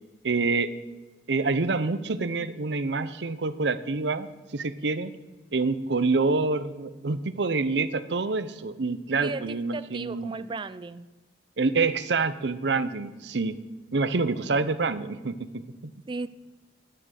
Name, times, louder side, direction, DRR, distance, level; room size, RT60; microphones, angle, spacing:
voice 1, 0.2-0.7 1.3-5.1 5.5-10.3 11.6-13.6 13.9-15.9, right 3 dB, 70° right, 0.7 m, -27 dB
voice 2, 9.1-11.1 16.1-16.3, right 3 dB, 25° right, 0.4 m, -35 dB
11.0 x 10.5 x 6.4 m
head